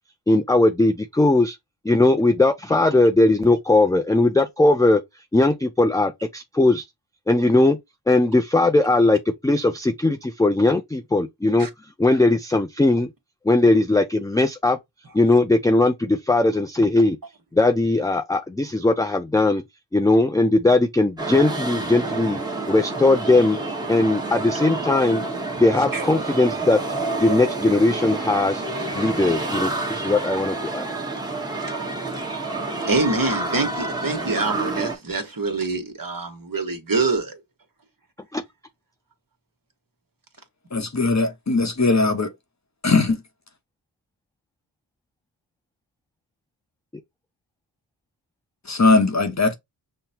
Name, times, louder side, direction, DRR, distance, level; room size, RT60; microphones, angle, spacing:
voice 1, 0.3-1.6 1.8-5.0 5.3-6.8 7.3-7.8 8.1-11.7 12.0-13.1 13.4-14.8 15.1-17.2 17.5-19.6 19.9-22.4 22.7-23.6 23.9-25.2 25.6-26.8 27.2-28.6 28.9-30.9 38.3-38.4, left 2 dB, 10° left, 0.4 m, -19 dB
sound 1, 21.2-34.9, right 2 dB, 10° right, 1.1 m, -28 dB
voice 2, 32.8-37.4, right 3 dB, 45° right, 1.3 m, -25 dB
voice 3, 40.7-42.3 42.8-43.2 48.7-49.5, left 3 dB, 35° left, 0.9 m, -19 dB
5.7 x 2.1 x 2.7 m
cardioid pair, 45°, 46 cm